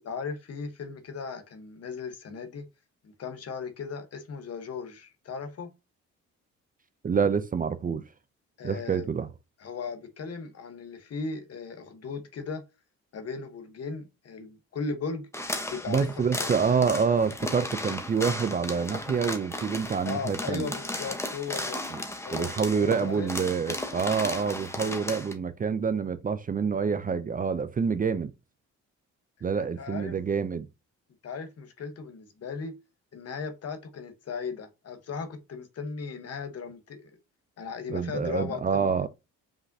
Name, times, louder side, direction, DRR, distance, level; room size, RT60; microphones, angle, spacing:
voice 1, 0.0-2.7 3.0-5.7 8.6-9.1 9.6-12.6 13.1-15.3 15.7-16.5 20.0-21.8 22.2-23.3 29.8-30.2 31.2-32.7 33.1-37.0 37.6-38.9, left 5 dB, 55° left, 1.2 m, -37 dB
voice 2, 7.0-8.1 8.6-9.3 15.9-20.7 22.3-28.3 29.4-30.7 37.9-39.1, right 6 dB, 30° right, 0.5 m, -27 dB
sound 1, 15.3-25.3, left 1 dB, 10° left, 1.0 m, -35 dB
5.3 x 3.5 x 2.7 m
cardioid pair, 90°, 30 cm